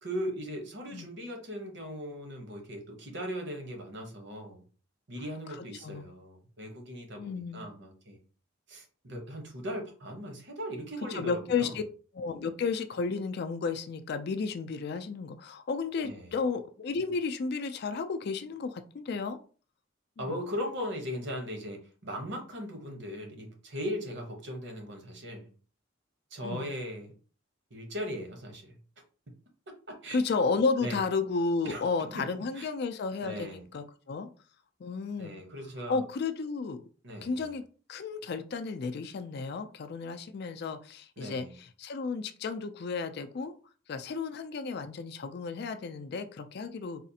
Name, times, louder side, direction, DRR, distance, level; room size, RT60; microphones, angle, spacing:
voice 1, 0.0-4.6 5.1-8.2 8.7-11.8 16.0-16.3 20.2-25.5 26.3-27.1 27.7-28.8 29.7-30.2 30.8-31.0 31.6-32.2 32.5-32.7 33.2-33.6 35.2-36.0 37.0-37.5 41.2-41.5, equal, 60° right, 3 dB, 1.0 m, -38 dB
voice 2, 7.2-7.7 11.1-11.8 12.1-19.4 20.2-20.4 26.4-26.7 30.1-34.3 34.8-35.3 35.9-36.8 37.2-37.6 37.9-43.5 43.9-47.0, left 4 dB, 50° left, 8 dB, 0.3 m, -33 dB
4.1 x 2.4 x 2.8 m, 0.38 s
head